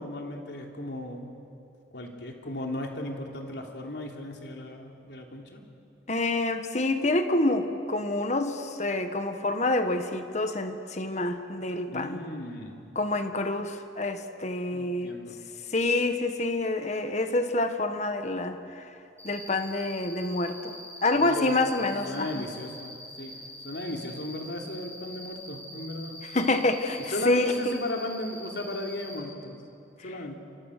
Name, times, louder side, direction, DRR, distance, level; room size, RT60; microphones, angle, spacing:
voice 1, 0.0-1.3 1.9-5.6 11.9-12.8 14.7-15.3 21.1-21.8 22.1-23.3 23.6-26.2 27.1-29.6 30.0-30.4, left 1 dB, 75° left, 1 dB, 3.5 m, -36 dB
voice 2, 6.1-12.2 12.9-15.1 15.7-18.8 19.2-22.3 26.3-27.8, left 2 dB, 40° left, 7 dB, 1.5 m, -27 dB
Cricket, 19.2-29.2, left 1 dB, 10° left, 7.3 m, -44 dB
28.5 x 25.5 x 6.7 m, 2.6 s
head